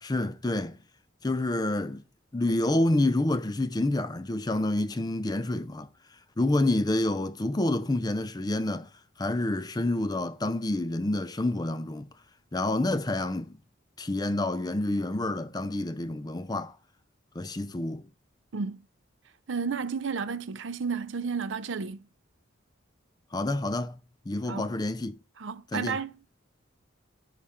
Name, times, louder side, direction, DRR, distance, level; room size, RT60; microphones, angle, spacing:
voice 1, 0.0-0.8 1.2-2.0 2.3-5.9 6.4-8.9 9.2-12.1 12.5-13.6 14.0-16.7 17.4-18.1 23.3-24.0 24.3-25.2 25.7-26.0, left 1 dB, 20° left, 0.5 m, -28 dB
voice 2, 19.5-22.0 24.5-24.7 25.4-26.1, right 5 dB, 65° right, 0.6 m, -32 dB
11.0 x 5.6 x 3.6 m
head